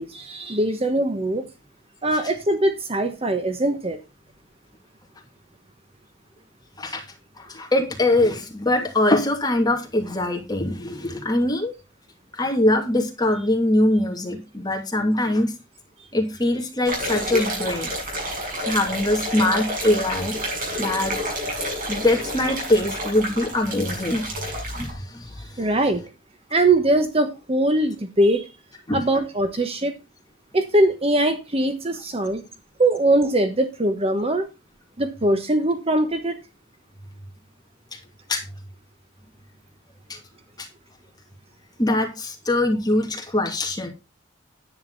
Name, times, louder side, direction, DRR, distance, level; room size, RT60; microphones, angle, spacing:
voice 1, 0.0-1.4 2.0-4.0 25.6-26.0 26.5-28.4 28.9-29.9 30.5-32.4 32.8-34.5 35.0-36.4, right 1 dB, 30° right, 7 dB, 1.2 m, -21 dB
voice 2, 7.4-11.7 12.4-15.5 16.1-17.9 18.7-20.3 20.8-21.1 21.9-25.3 28.9-29.0 38.3-38.4 40.6-40.7 41.8-43.9, left 1 dB, 20° left, 3 dB, 2.7 m, -22 dB
sound 1, 16.8-24.9, equal, 45° right, 7.2 m, -29 dB
10.5 x 9.1 x 4.0 m, 0.27 s
head